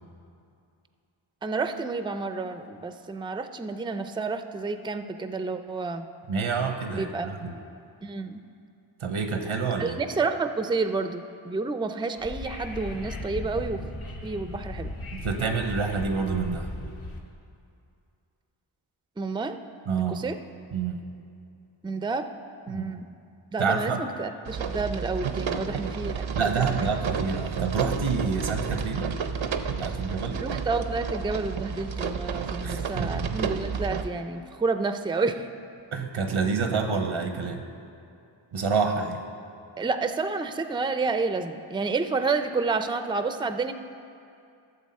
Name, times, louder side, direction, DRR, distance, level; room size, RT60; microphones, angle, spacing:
voice 1, 1.4-6.1 6.9-7.5 8.0-8.4 9.8-13.8 14.2-14.9 19.2-19.6 20.1-20.4 21.8-22.3 22.7-23.0 23.5-26.3 26.7-26.9 30.4-35.5 39.8-43.7, right 4 dB, 10° right, 9 dB, 0.4 m, -30 dB
voice 2, 6.3-7.6 9.0-10.0 15.1-16.7 19.9-20.2 20.7-21.0 22.7-23.0 23.6-24.0 26.3-29.1 29.8-30.4 32.6-33.5 35.9-37.6 38.5-39.2, right 5 dB, 90° right, 5 dB, 0.9 m, -28 dB
Wind / Subway metro underground, 12.2-17.2, left 1 dB, 80° left, 1.2 m, -37 dB
sound 1, 24.5-34.1, right 6 dB, 75° right, 0.6 m, -31 dB
13.0 x 7.0 x 4.3 m, 2.5 s
wide cardioid pair, 45°, 48 cm